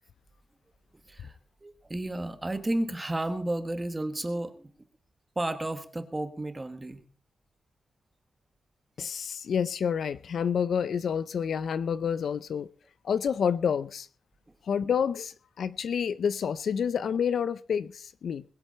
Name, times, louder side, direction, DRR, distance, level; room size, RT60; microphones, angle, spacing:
voice 1, 1.1-4.7 5.3-7.0, right 1 dB, 15° right, 1.5 m, -32 dB
voice 2, 9.0-12.7 13.0-14.1 14.6-18.4, left 7 dB, 60° left, 0.6 m, -29 dB
21.0 x 8.0 x 5.7 m
wide cardioid pair, 175°, 0 cm